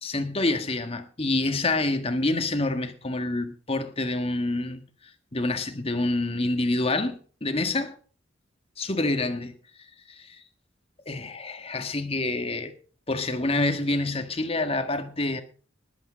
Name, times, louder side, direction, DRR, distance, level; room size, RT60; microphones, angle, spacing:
voice 1, 0.0-4.8 5.3-8.0 8.8-9.5 10.2-10.4 11.0-12.7 13.1-15.4, left 2 dB, 30° left, 1.6 m, -27 dB
20.0 x 8.7 x 5.1 m
head